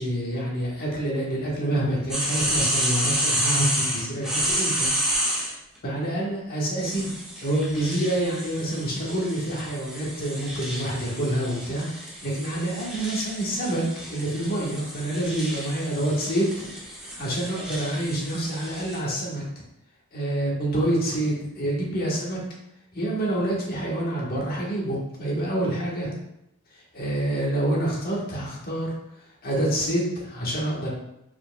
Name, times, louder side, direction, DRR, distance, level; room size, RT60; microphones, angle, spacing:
voice 1, 0.0-4.9 5.8-7.1 7.4-16.7 17.0-19.4 20.1-22.4 22.9-26.1 26.9-28.9 29.4-30.9, right 1 dB, 45° left, -4 dB, 1.3 m, -27 dB
sound 1, 2.1-5.5 6.8-19.0, equal, 5° right, 1.1 m, -30 dB
5.0 x 4.5 x 2.2 m, 0.83 s
head